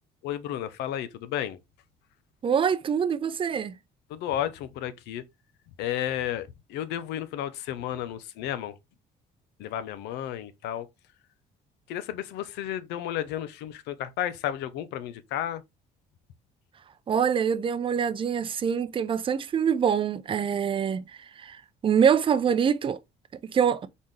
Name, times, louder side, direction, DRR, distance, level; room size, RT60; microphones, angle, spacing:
voice 1, 0.2-1.6 4.1-5.2 5.8-8.7 9.6-10.9 11.9-15.6, left 11 dB, 90° left, 0.6 m, -32 dB
voice 2, 2.4-3.7 17.1-21.0 21.4-23.0 23.4-23.9, right 7 dB, 30° right, 0.5 m, -25 dB
4.1 x 3.6 x 3.1 m
cardioid pair, 110°, 17 cm